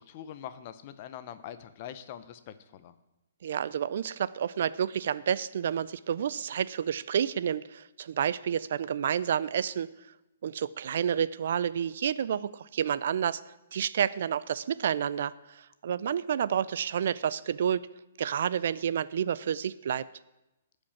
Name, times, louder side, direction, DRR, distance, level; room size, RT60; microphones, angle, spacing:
voice 1, 0.0-3.0, left 10 dB, 30° left, 12 dB, 0.6 m, -43 dB
voice 2, 3.4-9.9 10.4-13.4 13.7-17.9 18.2-20.0, right 8 dB, 55° right, 18 dB, 0.4 m, -29 dB
15.0 x 5.2 x 7.1 m, 0.98 s
hypercardioid pair, 170°, 0 cm